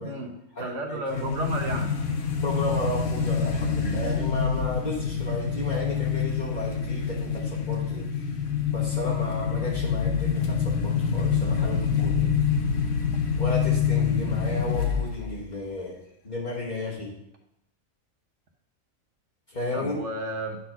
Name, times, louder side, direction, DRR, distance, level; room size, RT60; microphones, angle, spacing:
voice 1, 0.0-1.9 19.7-20.6, right 1 dB, 60° right, 3 dB, 1.4 m, -32 dB
voice 2, 0.5-1.3 2.4-8.1 8.7-12.3 13.4-16.0 16.2-17.1 19.5-20.0, left 2 dB, 35° left, -6 dB, 1.4 m, -33 dB
sound 1, 1.1-15.3, left 6 dB, 65° left, 1.3 m, -26 dB
10.0 x 4.1 x 5.8 m, 0.82 s
omnidirectional pair, 1.4 m